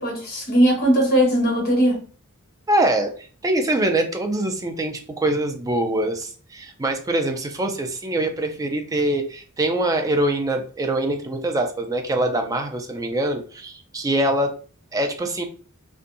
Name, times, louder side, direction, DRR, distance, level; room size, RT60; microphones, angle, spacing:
voice 1, 0.0-2.0, equal, 45° left, 1.2 m, -19 dB
voice 2, 2.7-14.5 14.9-15.4, right 1 dB, 15° right, 0.4 m, -24 dB
2.6 x 2.2 x 2.5 m
head